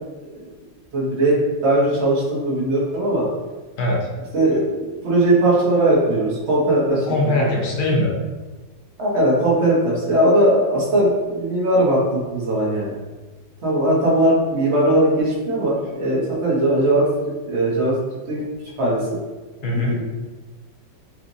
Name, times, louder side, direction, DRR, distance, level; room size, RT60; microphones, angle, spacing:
voice 1, 0.9-3.3 4.3-7.5 9.0-12.9 13.6-17.9 18.3-18.4 18.8-19.2 19.7-20.0, right 1 dB, 40° right, -5 dB, 1.2 m, -19 dB
voice 2, 3.8-4.1 7.1-8.1 19.6-20.0, left 1 dB, 80° left, -3 dB, 0.4 m, -21 dB
5.9 x 2.5 x 2.7 m, 1.2 s
omnidirectional pair, 2.1 m